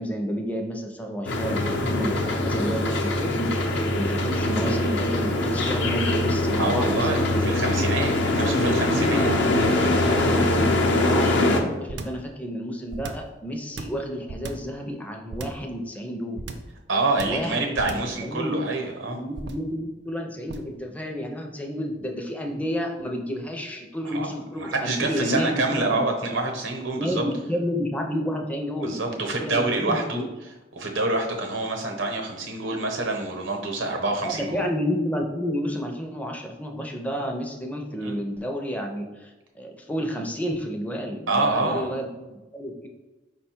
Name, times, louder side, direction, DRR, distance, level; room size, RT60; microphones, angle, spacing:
voice 1, 0.0-3.7 3.9-7.4 7.7-7.9 8.2-9.4 9.9-16.4 17.2-17.9 18.2-18.6 19.1-26.0 26.9-30.3 34.2-42.9, equal, 10° left, 2 dB, 0.4 m, -30 dB
sound 1, 1.3-11.6, left 2 dB, 70° left, 0.6 m, -23 dB
voice 2, 6.6-9.3 9.8-10.0 16.9-19.2 24.1-27.2 28.8-30.2 30.8-34.7 38.0-38.2 41.3-41.9, right 2 dB, 85° right, 3 dB, 0.8 m, -27 dB
sound 2, 11.9-12.3 12.9-13.3 13.8-14.7 15.3-15.7 16.4-16.8 17.2-17.5 17.8-18.2 19.3-19.7 20.5-20.8, right 3 dB, 60° right, 0.4 m, -36 dB
4.9 x 2.2 x 4.3 m, 1.1 s
head